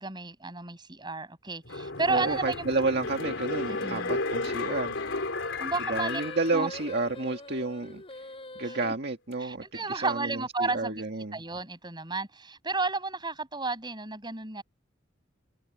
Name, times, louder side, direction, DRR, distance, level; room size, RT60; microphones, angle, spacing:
voice 1, 0.0-2.7 3.7-4.2 5.6-6.2 6.5-6.7 8.6-8.8 9.4-11.0 11.3-14.6, right 3 dB, 25° right, 7.3 m, -32 dB
sound 1, 1.6-7.2 7.6-7.7, left 3 dB, 70° left, 3.7 m, -33 dB
voice 2, 2.1-5.0 5.9-8.2 8.6-11.4, right 3 dB, 55° right, 2.0 m, -31 dB
sound 2, 5.9-8.9, left 2 dB, 30° left, 6.7 m, -43 dB
head